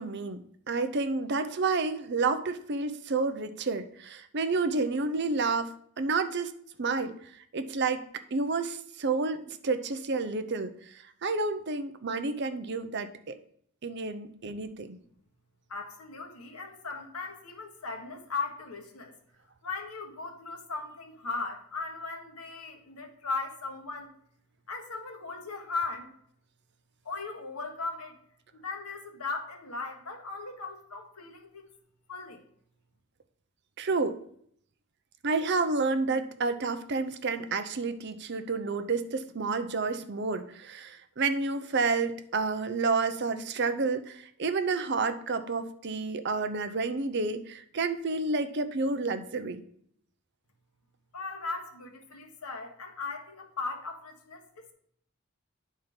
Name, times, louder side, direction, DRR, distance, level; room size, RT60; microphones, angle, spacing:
voice 1, 0.0-7.2 7.5-8.0 8.3-13.3 13.8-15.0 33.8-34.2 35.2-49.6, right 3 dB, 50° right, 10 dB, 0.6 m, -30 dB
voice 2, 15.7-19.1 19.6-24.1 24.7-26.1 27.0-28.2 28.5-31.7 32.1-32.4 51.1-54.7, left 4 dB, 85° left, 3 dB, 1.4 m, -38 dB
9.7 x 4.2 x 5.2 m, 0.65 s
head